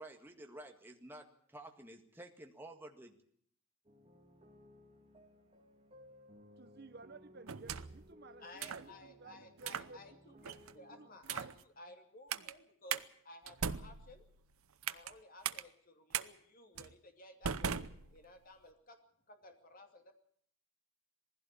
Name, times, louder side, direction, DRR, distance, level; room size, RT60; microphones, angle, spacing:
voice 1, 0.0-3.1, right 1 dB, 10° right, 3 dB, 1.8 m, -51 dB
sound 1, 3.8-11.2, left 1 dB, 25° right, 3.0 m, -61 dB
voice 2, 6.6-10.4 10.7-11.5 12.3-12.5, right 3 dB, 50° right, 12 dB, 0.8 m, -56 dB
sound 2, 7.5-8.1 8.6-8.9 9.6-9.9 10.4-10.7 11.2-11.6 12.3-12.5 12.9-13.0 13.5-15.1 15.4-15.6 16.1-16.3 16.8-16.9 17.4-18.5, right 7 dB, 85° right, 0.8 m, -39 dB
voice 3, 8.4-10.1 10.4-14.3 14.9-19.0 19.3-20.1, left 2 dB, 40° left, 5 dB, 2.8 m, -56 dB
20.0 x 16.0 x 8.5 m, 0.62 s
head